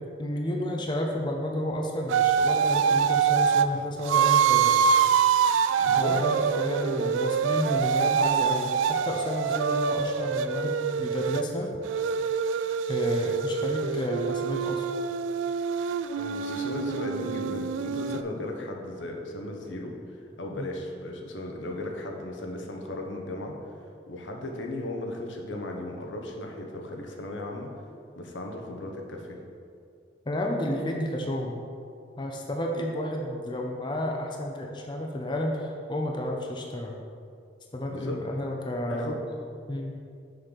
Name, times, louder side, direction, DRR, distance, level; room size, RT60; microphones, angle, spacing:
voice 1, 0.2-4.8 5.9-11.7 12.9-14.8 20.6-20.7 30.3-31.6 32.2-36.9 37.7-39.2 39.7-40.0, left 1 dB, 25° left, 1 dB, 0.5 m, -31 dB
sound 1, 2.1-3.7 4.1-11.4 11.9-18.2, right 7 dB, 90° right, 0.3 m, -25 dB
voice 2, 5.8-6.2 16.2-19.9 20.4-23.6 24.1-27.7 28.2-29.4 37.9-38.2 38.9-39.2, left 1 dB, 85° left, 1 dB, 0.9 m, -36 dB
6.4 x 3.8 x 6.3 m, 2.3 s
head